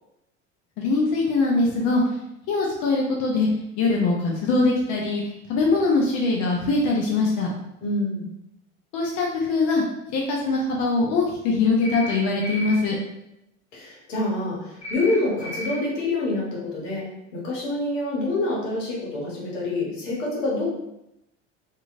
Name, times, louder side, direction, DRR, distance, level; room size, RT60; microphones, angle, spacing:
voice 1, 0.8-2.0 2.5-3.5 3.8-5.2 5.5-7.5 8.9-9.8 10.1-13.0, left 3 dB, 50° left, -2 dB, 0.7 m, -22 dB
voice 2, 7.8-8.3 13.7-20.7, left 2 dB, 85° left, -4 dB, 1.2 m, -27 dB
sound 1, 11.8-12.2 12.4-12.8 14.8-15.1 15.4-15.7, left 1 dB, 15° left, 1.0 m, -33 dB
2.8 x 2.6 x 2.4 m, 0.87 s
hypercardioid pair, 85°, 36 cm